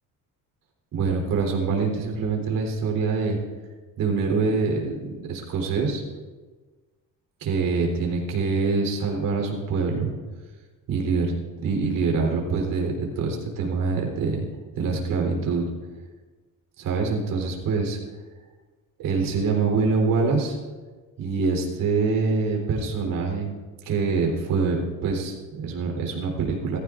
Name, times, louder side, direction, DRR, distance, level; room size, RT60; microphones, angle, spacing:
voice 1, 0.9-3.4 4.0-6.0 7.4-10.1 10.9-11.3 11.6-14.4 14.8-15.7 16.8-18.0 19.0-20.6 21.2-23.5 23.9-26.8, right 4 dB, 85° right, 0 dB, 3.8 m, -25 dB
19.5 x 15.0 x 2.6 m, 1.4 s
cardioid pair, 125°, 32 cm